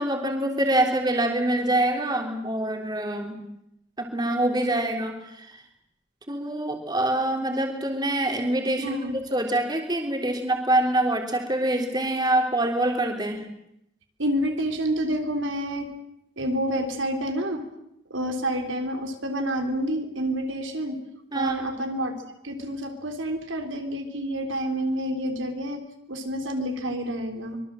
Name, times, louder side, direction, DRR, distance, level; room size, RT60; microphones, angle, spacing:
voice 1, 0.0-3.4 4.0-5.6 6.3-9.0 9.3-13.4 21.3-21.9, right 1 dB, 20° right, 3 dB, 3.3 m, -25 dB
voice 2, 8.8-9.2 14.2-15.9 16.4-17.6 18.1-21.0 21.3-22.2 22.4-25.8 26.1-27.6, right 1 dB, 75° right, 5 dB, 3.7 m, -28 dB
24.5 x 23.0 x 7.7 m, 0.80 s
head